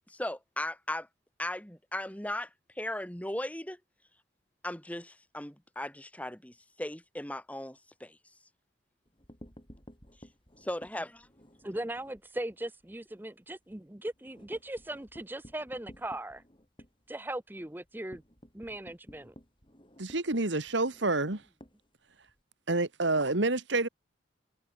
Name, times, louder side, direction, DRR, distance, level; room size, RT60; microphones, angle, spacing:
voice 1, 0.1-1.1 1.4-2.5 2.8-3.8 4.6-8.2 10.6-11.3, left 1 dB, 5° left, 1.7 m, -37 dB
sound 1, 9.1-12.3 12.6-12.8 13.1-13.2 13.6-22.4, equal, 25° left, 6.4 m, -54 dB
voice 2, 11.6-16.4 17.1-18.2 18.5-19.3, right 1 dB, 10° right, 0.7 m, -39 dB
voice 3, 20.0-21.4 22.7-23.9, right 2 dB, 65° right, 2.0 m, -28 dB
head